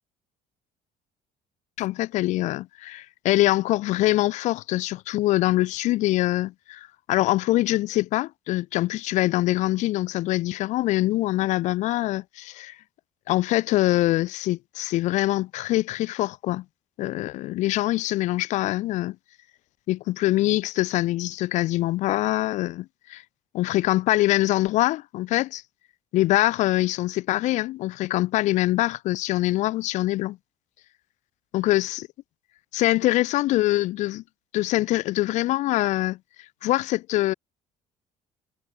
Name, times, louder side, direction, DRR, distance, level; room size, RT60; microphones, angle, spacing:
voice 1, 1.8-12.8 13.3-16.6 17.0-19.2 19.9-23.2 23.5-25.6 26.1-30.4 31.5-32.1 32.7-34.2 34.5-36.2 36.6-37.3, left 17 dB, 55° left, 0.6 m, -24 dB
cardioid pair, 180°, 15 cm